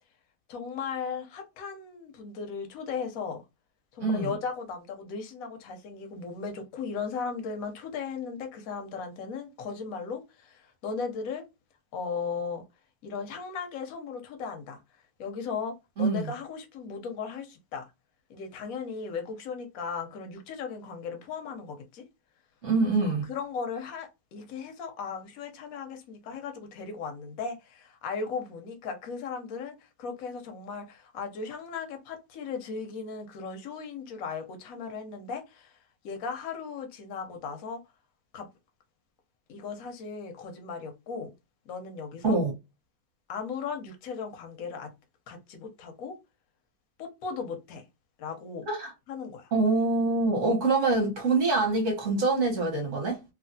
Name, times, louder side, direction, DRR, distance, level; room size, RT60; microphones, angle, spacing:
voice 1, 0.5-3.4 3.9-11.4 11.9-12.6 13.0-14.8 15.2-17.8 18.3-22.0 23.3-35.8 36.0-37.8 38.3-38.5 39.5-41.3 41.7-42.4 43.3-44.9 45.3-46.2 47.0-47.8 48.2-48.7 49.1-49.5, left 5 dB, 65° left, 0.9 m, -37 dB
voice 2, 4.0-4.3 16.0-16.3 22.6-23.3 42.2-42.5 48.7-48.9 49.5-53.2, right 3 dB, 45° right, 1.1 m, -25 dB
3.1 x 2.4 x 2.6 m
omnidirectional pair, 2.2 m